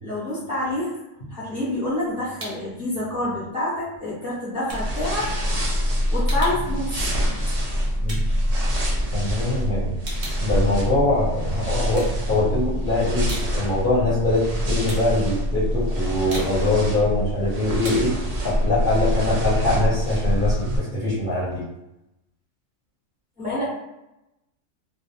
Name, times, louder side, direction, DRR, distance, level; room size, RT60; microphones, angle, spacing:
voice 1, 0.0-1.0 1.3-5.3 5.8-7.0 7.4-7.8 23.4-23.6, left 1 dB, 5° right, -9 dB, 0.9 m, -28 dB
sound 1, 1.5-2.8 3.1-9.3 9.6-11.4 11.8-12.7 13.0-19.7, right 1 dB, 35° right, 0.6 m, -41 dB
sound 2, 4.7-20.8, equal, 80° right, 0.3 m, -25 dB
voice 2, 9.1-9.9 10.4-18.1 18.4-21.6, left 2 dB, 50° left, -10 dB, 0.7 m, -23 dB
2.4 x 2.1 x 2.7 m, 0.91 s
omnidirectional pair, 1.4 m